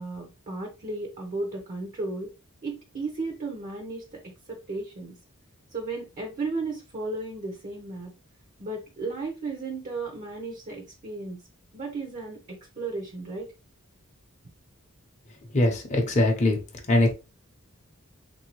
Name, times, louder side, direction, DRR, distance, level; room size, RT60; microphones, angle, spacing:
voice 1, 0.0-2.3 2.6-4.2 4.5-5.1 5.7-8.1 8.6-11.4 11.7-13.5, right 3 dB, 40° right, 1 dB, 0.7 m, -34 dB
voice 2, 15.5-16.6 16.9-17.1, left 1 dB, 35° left, 1 dB, 0.7 m, -21 dB
3.6 x 2.7 x 3.0 m, 0.29 s
head